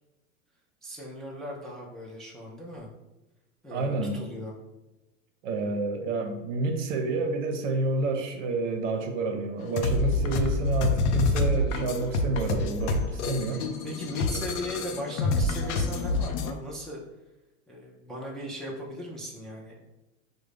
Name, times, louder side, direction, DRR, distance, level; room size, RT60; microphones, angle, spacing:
voice 1, 0.8-2.9 3.6-4.5 13.5-17.0 17.7-19.8, equal, ahead, -3 dB, 0.4 m, -38 dB
voice 2, 3.7-4.2 5.4-13.6, right 3 dB, 70° right, 5 dB, 0.7 m, -29 dB
sound 1, 9.6-16.5, left 2 dB, 60° left, 0.5 m, -27 dB
3.6 x 2.1 x 3.3 m, 1.0 s
hypercardioid pair, 105°, 39 cm